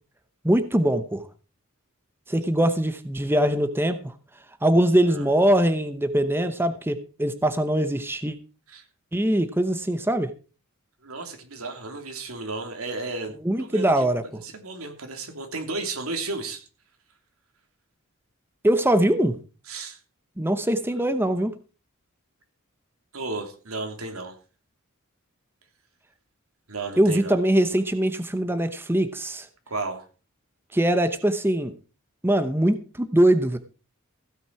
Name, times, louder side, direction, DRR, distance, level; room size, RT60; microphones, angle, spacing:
voice 1, 0.4-1.2 2.3-4.1 4.6-8.4 9.1-10.3 13.4-14.4 18.6-19.4 20.4-21.6 27.0-29.5 30.7-31.7 32.2-33.6, right 1 dB, 10° right, 10 dB, 0.8 m, -22 dB
voice 2, 11.0-13.3 13.6-14.1 14.4-16.6 19.7-20.0 23.1-24.3 26.7-27.4 29.7-30.0, right 3 dB, 85° right, 5 dB, 3.1 m, -33 dB
15.5 x 9.0 x 4.7 m, 0.36 s
head